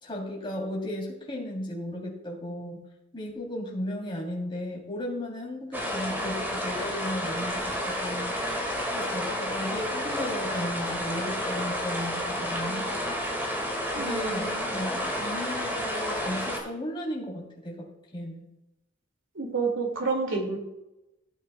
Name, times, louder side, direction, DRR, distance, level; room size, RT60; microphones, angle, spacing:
voice 1, 0.0-2.8 3.1-8.3 8.9-13.2 13.9-17.9 18.1-18.4, left 1 dB, 25° left, -2 dB, 3.2 m, -35 dB
sound 1, 5.7-16.6, equal, 10° right, 2.0 m, -31 dB
voice 2, 13.9-14.8 19.3-20.6, right 3 dB, 80° right, 2 dB, 2.3 m, -29 dB
17.0 x 9.1 x 2.3 m, 0.94 s
head